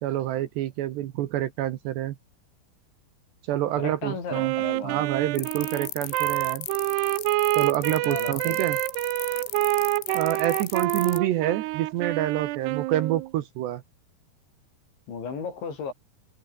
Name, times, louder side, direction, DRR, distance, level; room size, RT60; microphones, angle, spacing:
voice 1, 0.0-2.2 3.5-4.5 4.8-6.7 7.6-8.8 10.1-13.8, right 13 dB, 70° right, 3.0 m, -27 dB
voice 2, 3.8-5.1 8.0-8.6 15.1-15.9, left 5 dB, 65° left, 8.3 m, -35 dB
Wind instrument woodwind instrument, 4.3-13.3, right 19 dB, 85° right, 2.3 m, -27 dB
sound 1, 5.4-11.2, left 17 dB, 80° left, 3.3 m, -37 dB
omnidirectional pair, 5.7 m